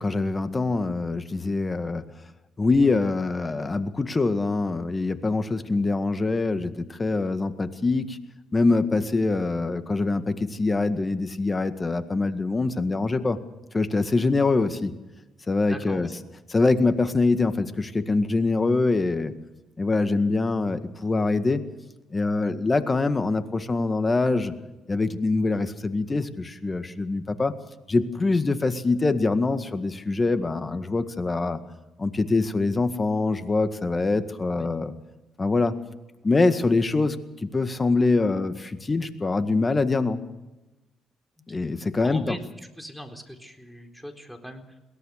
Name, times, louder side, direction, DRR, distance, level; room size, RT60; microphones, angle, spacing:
voice 1, 0.0-2.0 2.6-8.2 8.5-13.4 13.7-14.9 15.5-16.1 16.5-19.3 19.8-21.7 22.1-24.5 24.9-27.5 27.9-31.6 32.0-34.9 35.4-35.7 36.2-37.2 37.4-40.2 41.5-42.4, left 3 dB, 30° left, 10 dB, 1.9 m, -24 dB
voice 2, 15.7-16.1 34.5-34.7 41.4-41.7 42.0-42.4 42.7-44.8, equal, 5° left, 4 dB, 4.0 m, -40 dB
22.0 x 18.0 x 6.6 m, 1.1 s
hypercardioid pair, 50°, 0 cm